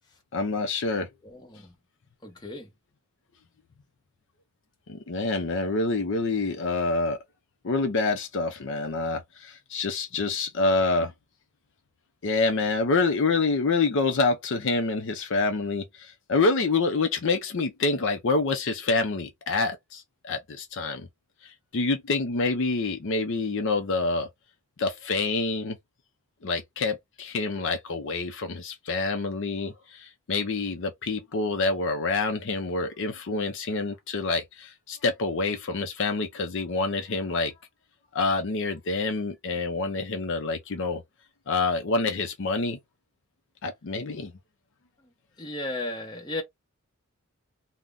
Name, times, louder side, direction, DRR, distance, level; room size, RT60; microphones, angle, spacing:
voice 1, 0.3-1.1 4.9-7.2 7.6-11.1 12.2-21.1 21.4-24.3 24.8-25.8 26.4-37.5 38.1-41.0 41.5-42.8 43.6-44.3, left 3 dB, 55° left, 0.5 m, -27 dB
voice 2, 1.2-1.7 2.2-2.7 45.4-46.4, left 2 dB, 20° left, 0.8 m, -35 dB
2.6 x 2.1 x 3.4 m
head